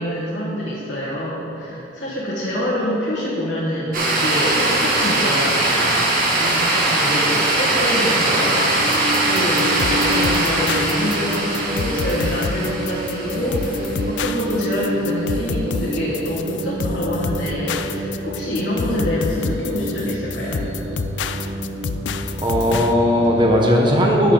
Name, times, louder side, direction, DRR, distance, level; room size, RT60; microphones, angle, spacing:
voice 1, 0.0-6.1 6.4-20.6, equal, 70° left, -7 dB, 1.5 m, -26 dB
sound 1, 3.9-14.2, right 2 dB, 55° right, 1.9 m, -21 dB
sound 2, 7.6-23.5, equal, 85° right, 0.8 m, -29 dB
sound 3, 8.9-22.9, left 5 dB, 90° left, 0.4 m, -28 dB
voice 2, 22.4-24.3, equal, 25° right, -1 dB, 1.1 m, -17 dB
12.0 x 6.6 x 3.9 m, 2.9 s
head